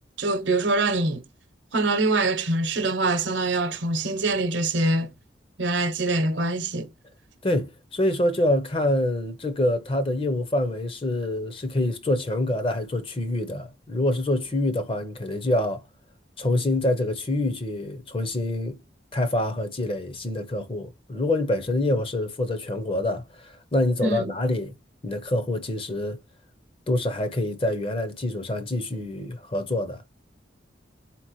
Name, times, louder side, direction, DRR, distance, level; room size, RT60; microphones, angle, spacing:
voice 1, 0.2-1.2 1.7-5.1 5.6-6.9 24.0-24.4, right 2 dB, 75° right, 0.8 m, -24 dB
voice 2, 7.4-15.8 16.4-18.8 19.1-24.8 25.0-26.2 26.9-30.0, left 1 dB, 30° left, 0.6 m, -26 dB
4.2 x 2.8 x 3.0 m
head